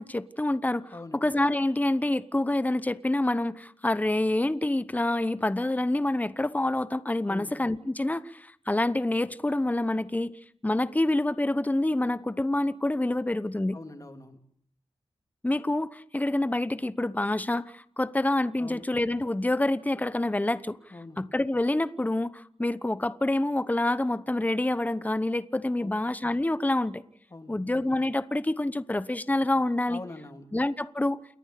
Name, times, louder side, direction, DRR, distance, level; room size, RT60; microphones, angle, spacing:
voice 1, 0.0-10.3 10.6-13.8 15.4-20.8 21.2-27.0 27.5-30.0 30.5-31.2, left 1 dB, 15° left, 1.0 m, -27 dB
voice 2, 0.9-1.2 7.3-7.5 13.7-14.4 18.6-18.8 20.9-21.2 25.8-25.9 27.3-27.6 29.9-30.5, left 2 dB, 35° left, 3.2 m, -43 dB
29.0 x 11.0 x 8.4 m
cardioid pair, 55°, 11 cm